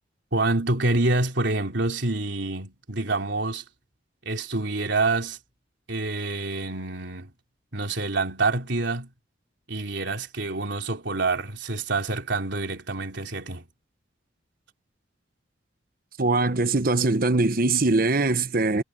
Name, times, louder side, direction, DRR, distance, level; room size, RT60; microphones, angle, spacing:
voice 1, 0.3-3.6 4.3-5.4 5.9-7.3 7.7-9.1 9.7-13.7, right 2 dB, 70° right, 3.5 m, -27 dB
voice 2, 16.2-18.8, right 3 dB, 50° right, 1.0 m, -22 dB
head